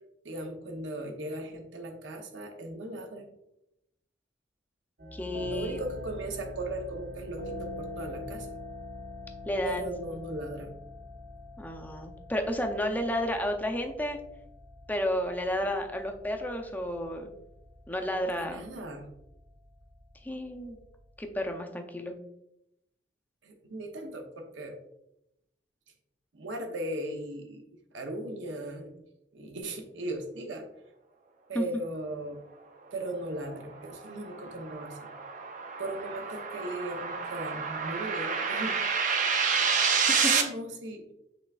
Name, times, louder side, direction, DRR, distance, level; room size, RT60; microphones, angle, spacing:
voice 1, 0.2-3.3 5.5-8.5 9.6-10.7 18.4-19.1 23.4-24.8 26.3-27.6 27.9-28.9 29.3-30.7 31.5-32.4 32.9-35.1 35.8-38.9 39.4-39.6 40.2-41.0, right 1 dB, 90° right, 4 dB, 0.8 m, -37 dB
sound 1, 5.0-21.5, left 1 dB, 65° right, 1.1 m, -45 dB
voice 2, 5.1-5.8 9.5-9.9 11.6-14.2 14.9-17.3 17.9-18.7 20.2-20.8 21.2-22.1 31.5-31.6, equal, 10° left, 4 dB, 0.5 m, -31 dB
sound 2, 33.5-40.4, right 5 dB, 45° right, 0.6 m, -29 dB
6.1 x 3.4 x 2.4 m, 0.84 s
head